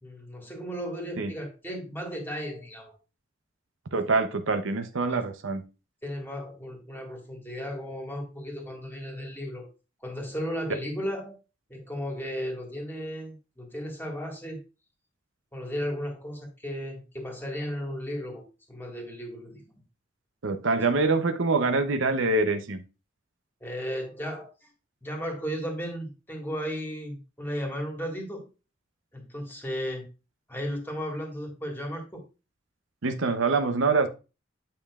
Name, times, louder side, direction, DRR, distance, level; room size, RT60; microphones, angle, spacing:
voice 1, 0.0-3.0 5.0-5.2 6.0-9.7 10.0-11.3 11.7-14.6 15.5-19.8 20.7-20.8 23.6-24.7 25.0-28.4 29.1-30.1 30.5-32.2, equal, 10° left, 1 dB, 1.8 m, -35 dB
voice 2, 3.9-5.6 20.4-22.8 33.0-34.1, right 3 dB, 90° right, 8 dB, 0.7 m, -25 dB
8.8 x 5.3 x 2.4 m, 0.30 s
head